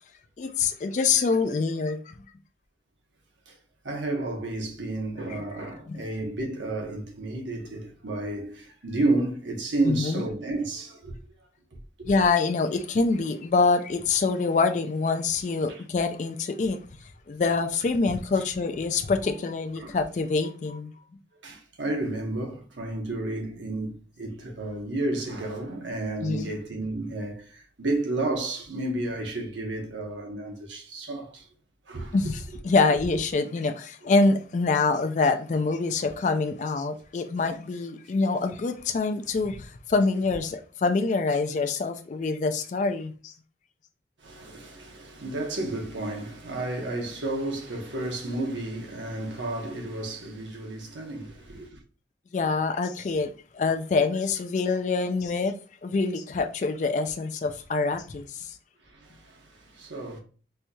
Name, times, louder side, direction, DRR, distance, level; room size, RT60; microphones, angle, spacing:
voice 1, 0.4-2.1 5.3-5.4 5.9-6.0 9.9-10.2 12.1-16.8 17.3-20.9 26.2-26.5 32.1-43.3 52.3-58.5, left 4 dB, 40° left, 0.3 m, -25 dB
voice 2, 3.8-11.5 12.0-12.3 15.7-15.8 19.8-20.0 21.3-31.5 31.9-32.2 40.3-40.4 44.2-51.8 58.8-60.2, right 2 dB, 80° right, 0.9 m, -32 dB
4.3 x 2.7 x 2.3 m
head